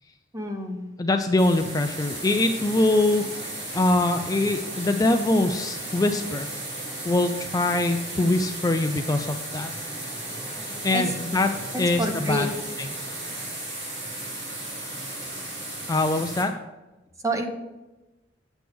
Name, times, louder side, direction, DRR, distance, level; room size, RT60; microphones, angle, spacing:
voice 1, 0.3-0.9 10.7-11.1 11.7-12.5 17.2-17.4, right 1 dB, 20° right, 4 dB, 1.0 m, -29 dB
voice 2, 1.0-3.2 3.7-6.5 7.1-9.7 10.8-11.5 11.8-12.5 12.8-12.9 15.9-16.5, left 2 dB, 20° left, 6 dB, 0.4 m, -23 dB
sound 1, 1.4-16.4, right 1 dB, 70° right, 2.9 m, -35 dB
8.0 x 7.7 x 3.5 m, 1.0 s
head